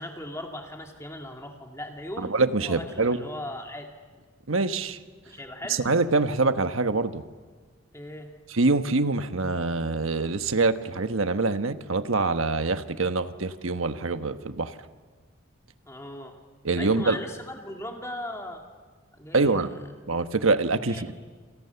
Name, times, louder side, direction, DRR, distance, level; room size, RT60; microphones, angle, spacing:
voice 1, 0.0-2.3 2.6-3.9 5.3-5.8 7.9-8.3 15.9-16.4 16.8-18.6 19.2-19.7 20.8-21.1, left 1 dB, 15° left, 2 dB, 2.2 m, -38 dB
voice 2, 2.2-3.2 4.5-5.0 5.8-7.2 8.5-14.7 16.6-17.2 19.3-19.7 20.1-21.2, right 3 dB, 75° right, 9 dB, 1.2 m, -25 dB
28.0 x 28.0 x 7.0 m, 1.5 s
head